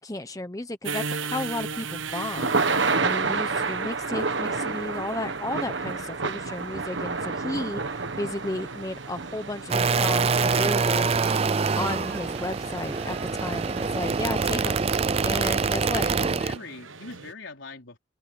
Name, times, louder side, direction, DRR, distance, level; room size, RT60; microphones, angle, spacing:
voice 1, 0.0-2.6 3.0-11.1 11.8-14.8 15.2-16.1, left 1 dB, 20° left, 1.0 m, -33 dB
sound 1, 0.8-17.3, right 5 dB, 90° right, 1.2 m, -40 dB
Thunder / Rain, 1.4-15.7, right 4 dB, 70° right, 1.4 m, -31 dB
sound 2, 9.7-16.6, right 4 dB, 30° right, 0.4 m, -25 dB
voice 2, 15.9-18.0, left 3 dB, 80° left, 4.0 m, -41 dB
open air
head